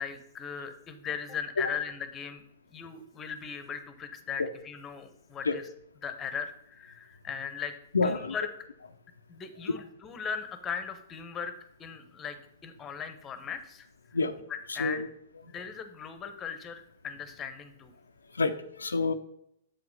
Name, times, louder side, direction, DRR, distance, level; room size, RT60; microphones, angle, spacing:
voice 1, 0.0-2.4 2.7-5.6 6.0-7.8 8.0-8.5 9.3-12.4 12.6-14.2 14.5-15.1 15.5-17.9, left 7 dB, 20° left, 11 dB, 0.9 m, -38 dB
voice 2, 7.9-8.3 14.1-14.3 14.7-15.1 18.3-19.1, left 3 dB, 80° left, 10 dB, 0.5 m, -28 dB
7.4 x 4.9 x 5.3 m, 0.72 s
figure-of-eight pair, 110°, 0 cm